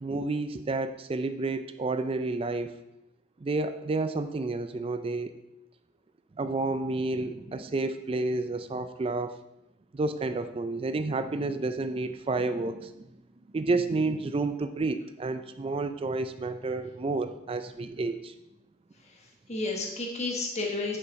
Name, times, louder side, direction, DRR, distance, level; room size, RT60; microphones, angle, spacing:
voice 1, 0.0-2.7 3.4-5.4 6.4-9.4 9.9-13.1 13.5-18.4, right 3 dB, 30° right, 10 dB, 0.4 m, -30 dB
voice 2, 19.0-21.0, left 3 dB, 35° left, 0 dB, 1.2 m, -32 dB
9.8 x 5.6 x 4.1 m, 0.89 s
head